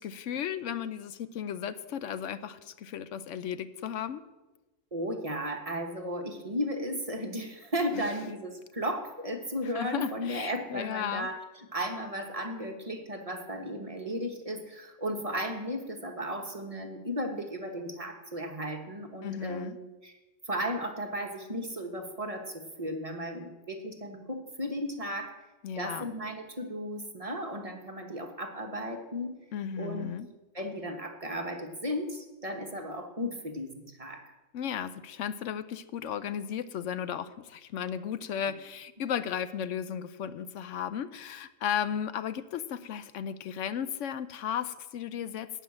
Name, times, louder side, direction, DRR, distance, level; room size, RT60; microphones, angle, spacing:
voice 1, 0.0-4.2 7.9-8.0 9.7-11.3 19.2-19.8 25.6-26.1 29.5-30.3 34.5-45.5, left 9 dB, 75° left, 13 dB, 0.9 m, -35 dB
voice 2, 4.9-20.1 20.5-25.3 25.8-29.3 29.8-30.1 30.5-34.2, equal, 30° right, 4 dB, 1.1 m, -35 dB
12.0 x 5.7 x 8.6 m, 1.1 s
omnidirectional pair, 1.3 m